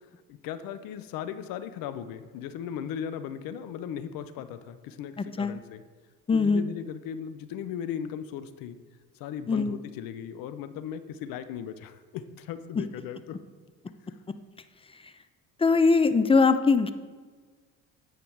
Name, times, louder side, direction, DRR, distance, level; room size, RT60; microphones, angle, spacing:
voice 1, 0.3-5.8 6.3-8.8 9.2-13.4 14.1-14.2, left 8 dB, 60° left, 12 dB, 0.7 m, -37 dB
voice 2, 6.3-6.6 9.5-9.7 15.6-16.9, left 4 dB, 15° left, 11 dB, 0.3 m, -21 dB
8.8 x 5.0 x 4.6 m, 1.4 s
hypercardioid pair, 65°, 39 cm